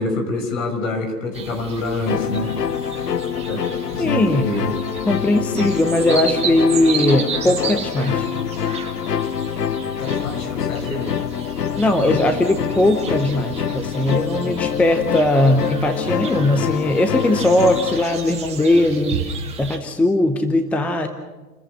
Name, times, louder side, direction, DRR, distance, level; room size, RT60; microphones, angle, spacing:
voice 1, 0.0-2.5 3.0-3.2 3.4-4.7 10.0-11.1 14.3-14.8, left 2 dB, 55° left, 4 dB, 6.1 m, -27 dB
sound 1, 1.3-19.8, right 6 dB, 15° right, 2.8 m, -33 dB
sound 2, 2.1-18.0, left 8 dB, 85° left, 0.9 m, -25 dB
voice 2, 4.0-4.5 5.1-8.2 11.8-19.2 19.6-21.1, left 1 dB, 5° left, 8 dB, 0.7 m, -19 dB
29.5 x 14.5 x 6.6 m, 1.2 s
figure-of-eight pair, 120°, 47 cm